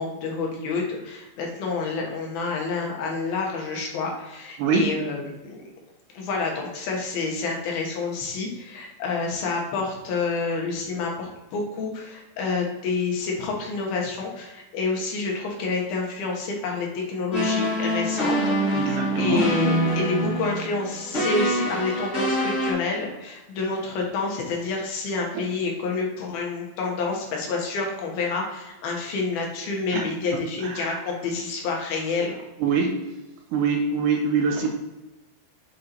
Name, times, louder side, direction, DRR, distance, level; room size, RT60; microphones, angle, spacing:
voice 1, 0.0-5.6 6.1-32.4, left 4 dB, 85° left, 0 dB, 3.1 m, -28 dB
voice 2, 4.6-4.9 18.7-19.4 29.9-30.1 30.3-31.0 32.6-33.0 33.5-34.7, right 5 dB, 75° right, 2 dB, 2.1 m, -24 dB
sound 1, 17.3-22.7, equal, 35° left, 1.3 m, -25 dB
7.4 x 3.8 x 4.4 m, 1.0 s
omnidirectional pair, 4.2 m